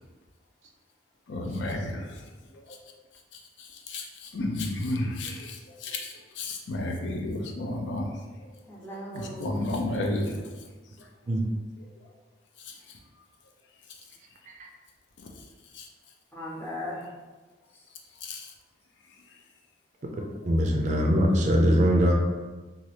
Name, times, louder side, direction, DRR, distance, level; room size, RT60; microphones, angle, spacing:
voice 1, 1.3-2.2 2.7-2.8 3.3-8.1 9.1-10.4 11.0-11.1 12.6-13.0 15.2-15.3 15.7-15.9 18.2-18.5, left 1 dB, 75° left, 2 dB, 0.5 m, -32 dB
voice 2, 8.7-9.7 16.3-17.1, left 1 dB, 10° left, -5 dB, 0.6 m, -38 dB
voice 3, 20.4-22.1, equal, 40° right, 1 dB, 0.4 m, -22 dB
2.8 x 2.4 x 3.2 m, 1.3 s
head